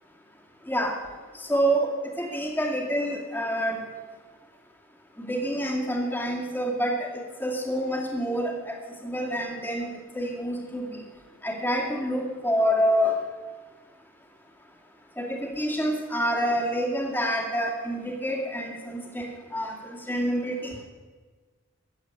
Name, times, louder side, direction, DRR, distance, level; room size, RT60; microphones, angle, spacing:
voice 1, 1.5-3.8 5.2-7.1 7.4-8.8 9.0-9.9 10.1-10.8 11.4-13.2 15.2-20.7, equal, 10° left, 0 dB, 2.3 m, -27 dB
14.0 x 8.4 x 9.0 m, 1.4 s
head